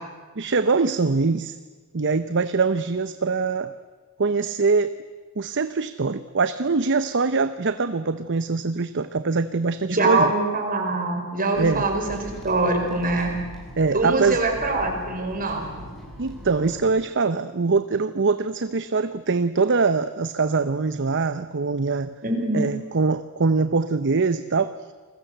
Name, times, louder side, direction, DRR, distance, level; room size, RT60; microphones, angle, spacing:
voice 1, 0.4-1.6 1.9-3.7 4.2-4.9 5.4-10.3 11.6-11.9 13.8-14.4 16.2-22.1 22.5-24.9, right 4 dB, 55° right, 12 dB, 0.8 m, -23 dB
voice 2, 9.9-13.3 13.9-15.8 22.2-22.7, right 2 dB, 40° right, 3 dB, 5.1 m, -24 dB
sound 1, 11.5-16.9, equal, ahead, 7.7 m, -40 dB
29.5 x 21.5 x 8.0 m, 1.4 s
head